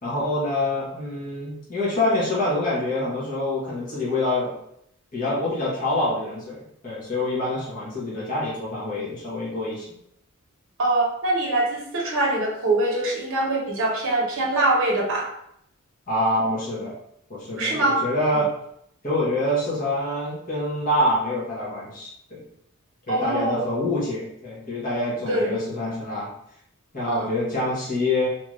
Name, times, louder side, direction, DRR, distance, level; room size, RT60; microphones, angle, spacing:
voice 1, 0.0-4.5 5.1-9.9 16.1-16.9 17.3-18.5 19.0-22.4 23.1-26.3 26.9-28.3, left 1 dB, 35° left, -7 dB, 0.9 m, -26 dB
voice 2, 10.8-15.3 17.5-18.0 18.3-18.4 23.1-23.6 25.3-25.5 27.1-27.3, right 2 dB, 60° right, -2 dB, 0.9 m, -23 dB
2.8 x 2.4 x 3.0 m, 0.74 s
head